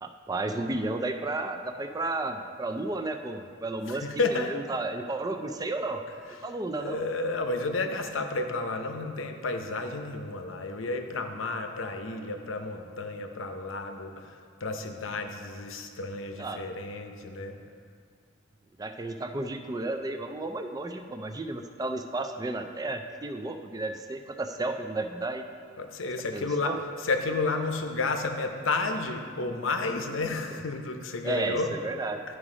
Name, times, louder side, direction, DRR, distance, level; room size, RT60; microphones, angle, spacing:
voice 1, 0.0-4.1 4.3-6.0 6.4-7.0 16.4-16.7 18.8-25.4 26.3-26.8 31.2-32.2, right 2 dB, 20° right, 6 dB, 0.4 m, -33 dB
voice 2, 3.9-4.5 6.7-17.6 25.8-31.7, left 3 dB, 85° left, 5 dB, 0.7 m, -31 dB
11.5 x 4.9 x 4.9 m, 2.1 s
head